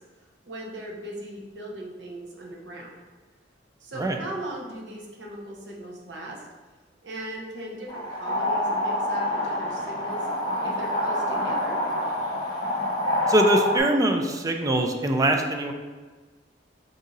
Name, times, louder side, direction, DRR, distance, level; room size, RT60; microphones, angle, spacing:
voice 1, 0.4-2.9 3.8-6.4 7.0-10.3 10.6-11.8, right 1 dB, 65° right, -2 dB, 0.9 m, -38 dB
sound 1, 7.9-13.8, left 1 dB, 25° left, 1.1 m, -27 dB
voice 2, 13.3-15.7, right 1 dB, 20° right, 3 dB, 0.3 m, -22 dB
3.7 x 2.7 x 3.9 m, 1.3 s
head